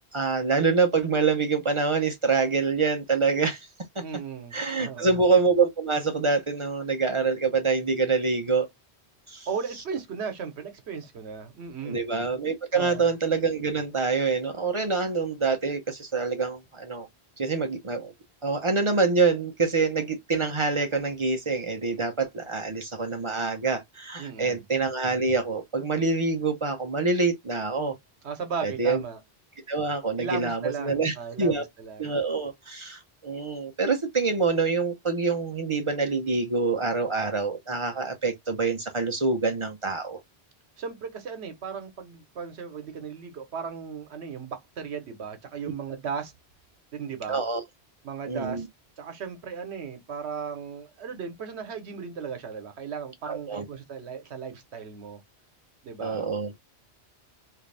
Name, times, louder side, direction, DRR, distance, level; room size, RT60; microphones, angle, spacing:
voice 1, 0.1-3.7 4.0-4.2 4.5-8.7 9.3-9.5 11.8-17.1 17.4-18.1 18.4-27.9 28.6-29.0 29.7-31.6 32.0-40.2 47.3-47.6 48.3-48.7 53.3-53.7 56.0-56.5, right 4 dB, 35° right, 0.6 m, -26 dB
voice 2, 4.0-5.1 9.5-12.0 12.7-13.1 24.2-24.6 28.2-29.2 30.2-32.1 40.8-46.3 46.9-47.4 48.0-48.7 49.0-55.2 55.8-56.3, right 6 dB, 80° right, 1.1 m, -36 dB
3.2 x 2.5 x 3.2 m
omnidirectional pair, 1.1 m